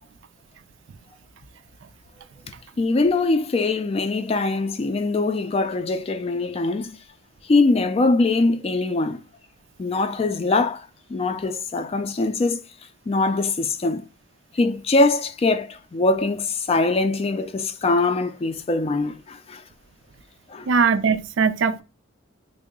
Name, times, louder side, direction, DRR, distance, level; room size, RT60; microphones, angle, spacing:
voice 1, 2.8-7.0 7.5-9.2 9.8-10.8 11.1-12.6 13.1-14.1 14.5-19.6 20.5-20.7, left 3 dB, 30° left, 0.3 m, -22 dB
voice 2, 20.7-21.8, right 5 dB, 75° right, 0.4 m, -20 dB
3.5 x 2.0 x 3.5 m
head